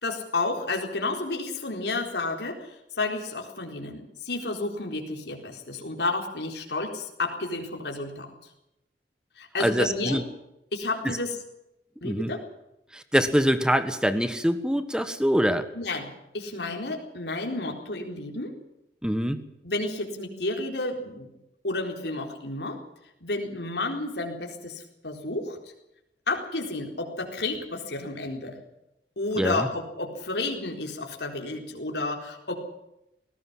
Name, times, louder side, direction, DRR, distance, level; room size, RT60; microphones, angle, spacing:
voice 1, 0.0-2.7 2.9-8.3 9.4-10.2 10.7-11.3 12.0-12.4 15.7-18.5 19.6-21.3 21.6-22.8 23.2-25.6 26.3-28.6 29.2-32.6, left 2 dB, 70° left, 2 dB, 4.2 m, -31 dB
voice 2, 9.6-10.2 11.0-11.2 12.0-12.3 12.9-15.7 19.0-19.4 29.4-29.7, equal, 5° right, 11 dB, 1.5 m, -24 dB
20.5 x 17.5 x 7.5 m, 0.87 s
head